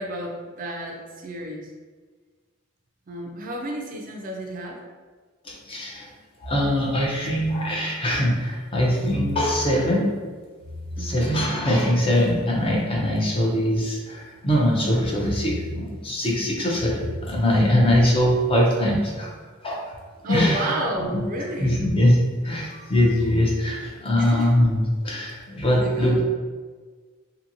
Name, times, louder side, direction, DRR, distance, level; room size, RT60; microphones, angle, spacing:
voice 1, 0.0-1.7 3.1-4.8 11.0-11.4 20.2-21.8 24.2-24.5 25.7-26.2, right 1 dB, 40° right, 0 dB, 0.4 m, -31 dB
voice 2, 5.4-6.1 6.4-10.1 11.0-19.3 19.6-19.8 20.3-20.7 21.6-26.2, left 1 dB, 25° left, -3 dB, 0.6 m, -22 dB
2.8 x 2.6 x 2.6 m, 1.4 s
head